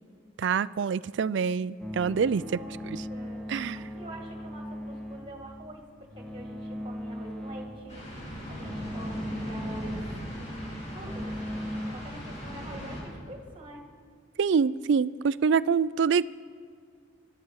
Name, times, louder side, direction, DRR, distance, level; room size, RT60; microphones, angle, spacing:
voice 1, 0.4-2.6 2.9-3.0 3.5-3.8 14.4-16.2, right 6 dB, 60° right, 19 dB, 0.4 m, -26 dB
sound 1, 1.8-11.9, equal, 5° left, 1.3 m, -39 dB
voice 2, 2.4-8.1 8.5-10.0 10.4-13.8, right 1 dB, 25° right, 2 dB, 1.8 m, -45 dB
sound 2, 7.9-13.0, equal, 35° left, 4.3 m, -39 dB
24.0 x 12.5 x 4.7 m, 2.1 s
head